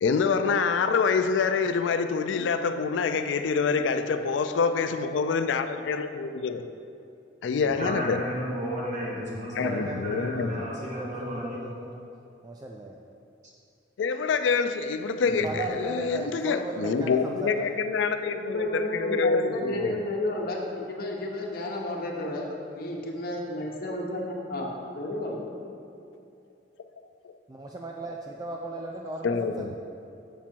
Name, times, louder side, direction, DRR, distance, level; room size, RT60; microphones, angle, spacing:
voice 1, 0.0-6.7 7.4-8.3 9.6-10.7 14.0-20.0 29.2-29.7, left 5 dB, 80° left, 9 dB, 0.4 m, -26 dB
voice 2, 7.6-11.7 15.2-15.5, equal, 40° right, -5 dB, 1.7 m, -33 dB
voice 3, 9.6-12.1 12.4-13.0 15.4-17.7 27.5-29.8, right 2 dB, 20° right, 0 dB, 0.4 m, -37 dB
voice 4, 18.4-24.7 25.0-25.5, left 1 dB, 55° left, -1 dB, 1.1 m, -32 dB
7.3 x 6.0 x 4.5 m, 2.6 s
head